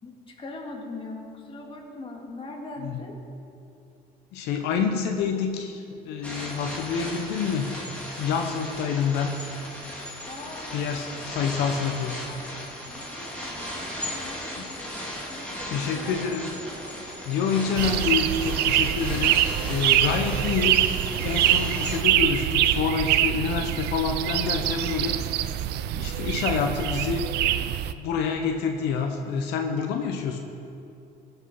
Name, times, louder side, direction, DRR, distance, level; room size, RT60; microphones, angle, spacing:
voice 1, 0.0-3.2 10.3-11.2 11.6-11.9 12.2-12.5 12.9-16.4, left 2 dB, 30° left, 0 dB, 2.0 m, -41 dB
voice 2, 4.3-7.7 8.2-9.3 10.7-12.1 14.6-14.7 15.7-16.5 17.0-19.4 19.6-20.9 21.2-25.2 25.9-27.7 28.0-30.4, left 6 dB, 90° left, 4 dB, 0.9 m, -27 dB
sound 1, 6.2-22.0, equal, 5° left, 2.4 m, -36 dB
Train, 15.5-22.5, right 1 dB, 45° right, 3.0 m, -47 dB
sound 2, 17.8-27.9, right 12 dB, 80° right, 0.5 m, -24 dB
17.0 x 5.8 x 5.5 m, 2.6 s
cardioid pair, 110°, 17 cm